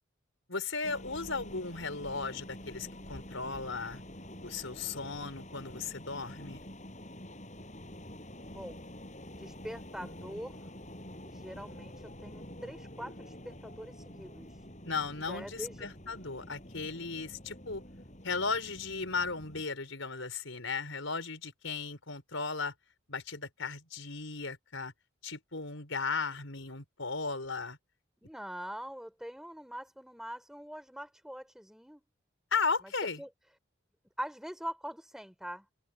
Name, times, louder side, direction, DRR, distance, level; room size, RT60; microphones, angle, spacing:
voice 1, 0.5-4.0 4.4-6.6 14.8-17.8 18.2-22.7 23.1-24.9 25.2-27.8 32.5-33.2, left 4 dB, 70° left, 4.8 m, -36 dB
sound 1, 0.8-19.6, left 1 dB, 35° left, 6.6 m, -47 dB
voice 2, 9.4-10.7 11.2-14.5 15.3-15.9 28.2-32.0 33.2-33.3 34.2-35.7, equal, ahead, 3.5 m, -43 dB
open air
head